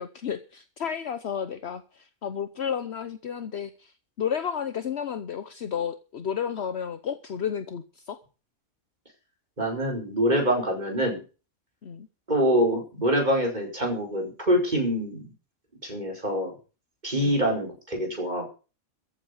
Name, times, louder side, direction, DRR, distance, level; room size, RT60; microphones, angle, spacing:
voice 1, 0.0-8.2 11.8-12.1 17.2-17.4, left 8 dB, 60° left, 11 dB, 1.1 m, -32 dB
voice 2, 9.6-11.2 12.3-15.3 15.8-16.5 17.0-18.5, equal, 35° right, 1 dB, 5.3 m, -25 dB
14.5 x 8.7 x 7.0 m, 0.35 s
omnidirectional pair, 1.3 m